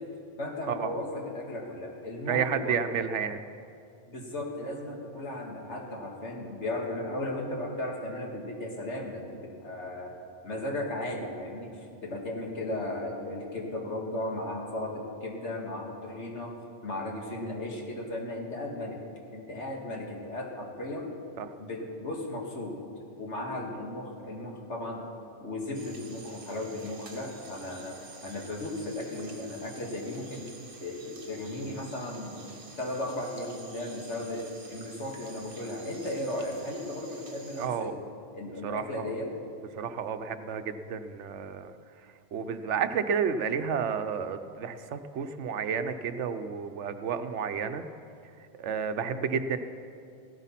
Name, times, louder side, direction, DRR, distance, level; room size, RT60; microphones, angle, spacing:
voice 1, 0.4-2.8 4.1-10.1 10.4-16.5 16.8-19.0 19.3-21.1 21.6-22.8 23.2-25.0 25.4-30.5 30.8-38.0 38.3-39.3, left 1 dB, 80° left, 0 dB, 2.3 m, -36 dB
voice 2, 2.3-3.4 21.4-21.5 37.6-38.0 38.6-39.1 39.8-41.7 42.3-47.9 48.6-49.6, right 7 dB, 85° right, 10 dB, 1.1 m, -31 dB
sound 1, 25.7-37.7, right 3 dB, 50° right, 1.4 m, -50 dB
15.0 x 12.5 x 5.8 m, 2.5 s
omnidirectional pair, 1.2 m